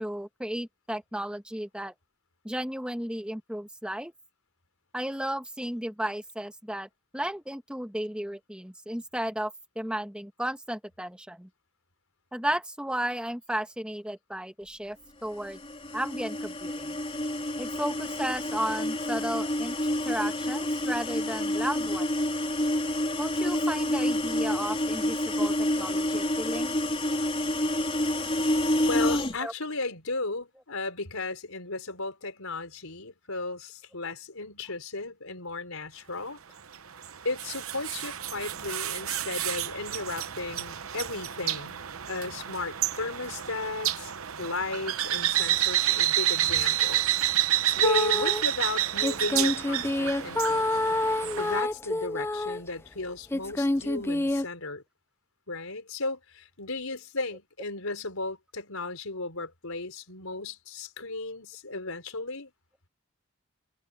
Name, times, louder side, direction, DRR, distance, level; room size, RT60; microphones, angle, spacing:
voice 1, 0.0-1.9 2.4-4.1 4.9-11.5 12.3-15.0 15.2-15.6 15.9-17.0 17.6-19.7 20.0-22.2 23.2-26.8 29.4-29.5, right 1 dB, 5° right, 1.3 m, -34 dB
sound 1, 15.4-29.4, left 1 dB, 25° left, 3.8 m, -28 dB
voice 2, 28.5-36.4 37.2-44.1 44.4-47.2 47.7-50.6 51.4-54.8 55.5-62.5, left 3 dB, 90° left, 4.6 m, -35 dB
sound 2, 36.7-51.6, right 12 dB, 80° right, 0.9 m, -29 dB
sound 3, 47.7-48.4 49.0-52.7 53.3-54.4, left 1 dB, 10° left, 0.5 m, -28 dB
head